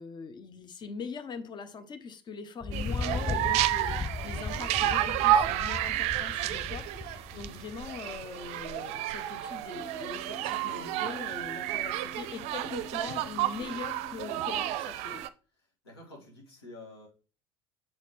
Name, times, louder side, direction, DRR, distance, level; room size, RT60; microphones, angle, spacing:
voice 1, 0.0-15.2, left 5 dB, 35° left, 0.9 m, -42 dB
Thunder, 2.6-8.1, left 4 dB, 15° left, 0.3 m, -37 dB
sound 1, 2.7-15.3, right 12 dB, 55° right, 0.5 m, -31 dB
sound 2, 9.7-14.7, left 4 dB, 65° left, 1.7 m, -49 dB
voice 2, 15.5-17.1, left 2 dB, 85° left, 2.2 m, -49 dB
7.2 x 4.1 x 3.2 m
hypercardioid pair, 70°, 13 cm